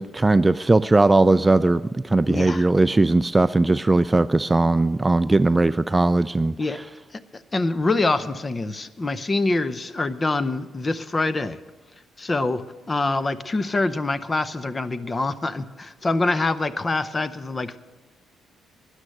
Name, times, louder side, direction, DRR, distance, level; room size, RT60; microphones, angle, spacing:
voice 1, 0.0-6.6, right 2 dB, 15° right, 14 dB, 0.3 m, -19 dB
voice 2, 2.3-2.7 6.6-6.8 7.1-11.6 12.2-12.6 12.9-17.8, left 2 dB, 25° left, 14 dB, 0.7 m, -25 dB
12.5 x 9.9 x 6.6 m, 1.2 s
cardioid pair, 90°, 0 cm